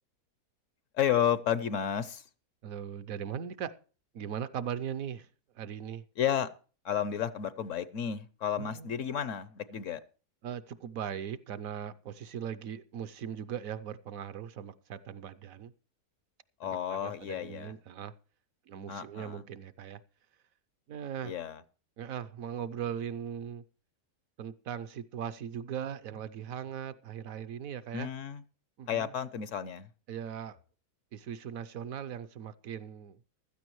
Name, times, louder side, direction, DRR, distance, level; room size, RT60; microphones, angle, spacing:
voice 1, 0.9-2.3 6.2-6.5 6.8-10.0 16.6-17.7 18.9-19.4 21.2-21.6 27.9-28.4 28.9-29.9, left 9 dB, 60° left, 1.0 m, -32 dB
voice 2, 2.6-3.7 4.1-5.3 5.5-6.0 8.6-8.9 10.4-15.7 16.6-18.1 18.7-20.0 20.9-21.3 22.0-23.6 24.4-28.1 28.8-29.1 30.1-30.6 31.1-33.2, right 8 dB, 65° right, 1.1 m, -39 dB
15.5 x 13.0 x 3.1 m
omnidirectional pair, 1.6 m